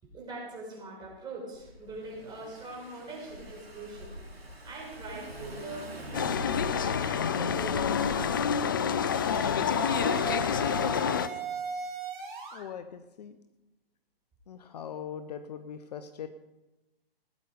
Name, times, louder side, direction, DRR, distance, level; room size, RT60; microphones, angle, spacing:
voice 1, 0.0-9.6 9.8-11.4, right 2 dB, 15° right, -3 dB, 5.6 m, -44 dB
Car / Engine, 1.5-8.5, equal, 80° right, 2.4 m, -43 dB
sound 1, 6.1-11.3, left 7 dB, 25° left, 0.3 m, -28 dB
sound 2, 8.0-8.3 9.1-12.6, right 6 dB, 55° right, 3.7 m, -38 dB
voice 2, 12.5-13.4 14.5-16.3, left 8 dB, 45° left, 10 dB, 0.8 m, -41 dB
17.5 x 9.4 x 5.1 m, 1.0 s
figure-of-eight pair, 130°, 30 cm